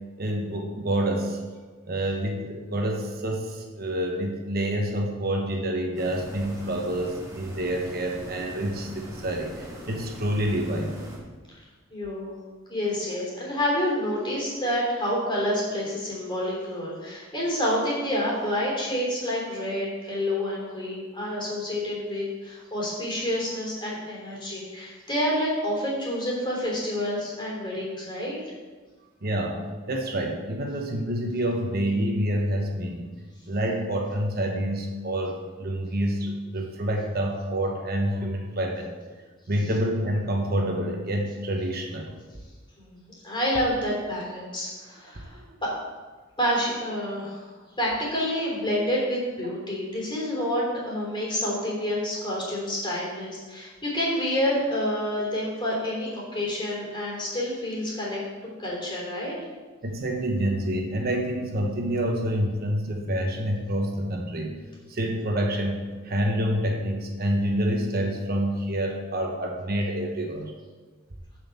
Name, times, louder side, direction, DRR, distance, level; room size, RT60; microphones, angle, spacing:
voice 1, 0.2-1.4 1.9-10.9 29.2-33.1 33.5-38.9 39.5-42.1 59.8-64.6 64.9-70.5, right 1 dB, 50° right, 2 dB, 1.1 m, -27 dB
sound 1, 6.0-11.2, equal, 20° right, 2.1 m, -41 dB
voice 2, 11.9-12.4 12.7-28.4 42.8-45.7 46.4-47.5 47.8-58.2 58.6-59.3, equal, 25° left, -4 dB, 3.4 m, -28 dB
7.0 x 6.3 x 7.2 m, 1.4 s
head